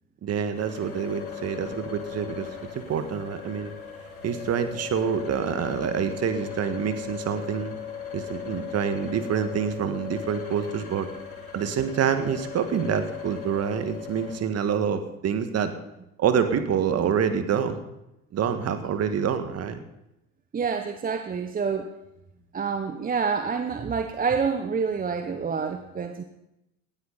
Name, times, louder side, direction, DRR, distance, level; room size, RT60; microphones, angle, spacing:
voice 1, 0.2-2.5 2.7-3.7 4.2-7.7 8.1-11.1 11.5-15.7 16.2-17.8 18.3-19.8, right 7 dB, 35° right, 9 dB, 1.7 m, -26 dB
sound 1, 0.5-14.4, left 8 dB, 85° left, 2.7 m, -38 dB
voice 2, 20.5-21.9 22.5-26.2, right 5 dB, 20° right, 8 dB, 1.0 m, -27 dB
18.0 x 13.0 x 4.1 m, 0.88 s
figure-of-eight pair, 70°, 42 cm